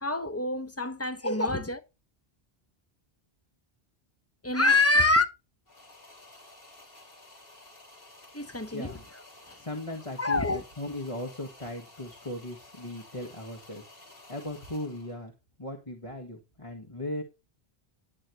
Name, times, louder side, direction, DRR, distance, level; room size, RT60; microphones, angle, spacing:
voice 1, 0.0-1.8 4.4-5.3 8.3-8.9 9.5-9.6 10.2-10.6, left 2 dB, 15° left, 1.0 m, -25 dB
sound 1, 5.7-15.2, left 2 dB, 65° left, 3.6 m, -53 dB
voice 2, 8.7-9.0 9.6-15.3 15.6-17.2, left 1 dB, 30° left, 1.8 m, -38 dB
11.5 x 8.7 x 3.1 m
omnidirectional pair, 1.0 m